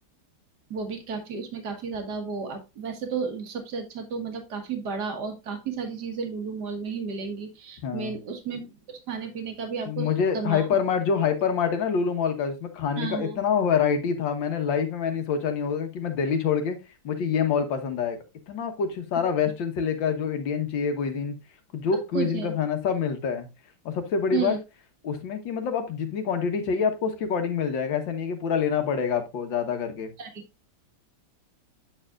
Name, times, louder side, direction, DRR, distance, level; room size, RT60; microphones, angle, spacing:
voice 1, 0.7-10.1 10.3-10.7 13.0-13.4 22.1-22.5 24.3-24.6 30.2-30.4, right 6 dB, 60° right, 5 dB, 2.0 m, -33 dB
voice 2, 7.8-8.2 9.9-16.8 17.0-18.2 18.5-21.4 21.7-23.5 23.9-24.6 25.0-30.1, left 6 dB, 85° left, 7 dB, 1.9 m, -26 dB
8.2 x 6.8 x 2.4 m, 0.24 s
omnidirectional pair, 2.0 m